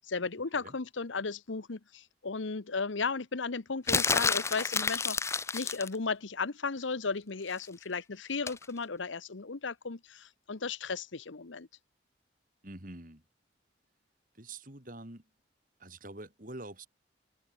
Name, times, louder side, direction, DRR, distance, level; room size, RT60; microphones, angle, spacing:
voice 1, 0.0-11.7, left 4 dB, 85° left, 1.0 m, -35 dB
sound 1, 3.9-6.0 8.5-8.7, left 4 dB, 15° left, 0.4 m, -29 dB
voice 2, 12.6-13.2 14.3-15.2 15.8-16.9, right 2 dB, 45° right, 3.0 m, -46 dB
open air
head